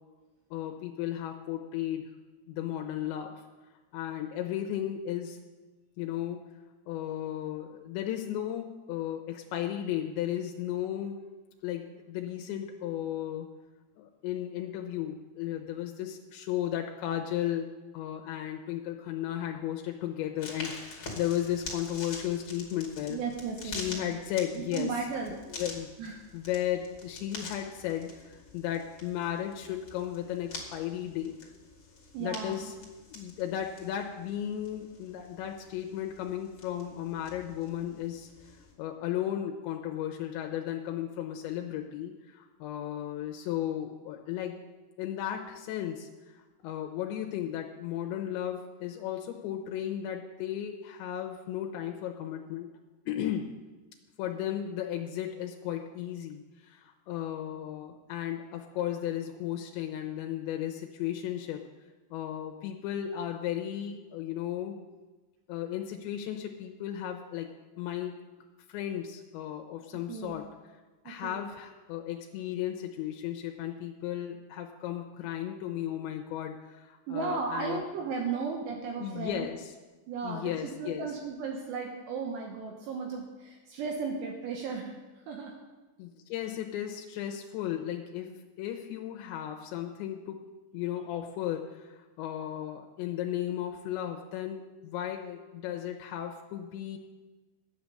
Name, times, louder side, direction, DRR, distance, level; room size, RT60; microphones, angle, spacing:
voice 1, 0.5-2.1 2.5-3.4 3.9-5.4 6.0-6.5 6.9-11.2 11.6-13.5 14.0-23.2 23.6-24.9 25.5-25.9 26.3-31.5 32.2-32.7 33.1-38.3 38.8-44.6 45.0-46.1 46.6-52.7 53.1-53.5 54.2-61.6 62.1-64.8 65.5-67.5 67.8-68.2 68.7-70.4 71.1-77.8 79.0-79.7 80.2-81.1 86.0-90.4 90.7-97.0, left 11 dB, 85° left, 3 dB, 3.0 m, -35 dB
sound 1, 20.4-38.7, left 3 dB, 35° left, 2.3 m, -46 dB
voice 2, 23.1-24.1 24.6-25.4 26.0-26.2 32.1-32.7 70.1-70.4 71.1-71.4 77.1-79.5 80.1-85.5, right 5 dB, 75° right, 1 dB, 3.0 m, -35 dB
13.0 x 9.5 x 6.7 m, 1.2 s
omnidirectional pair, 5.4 m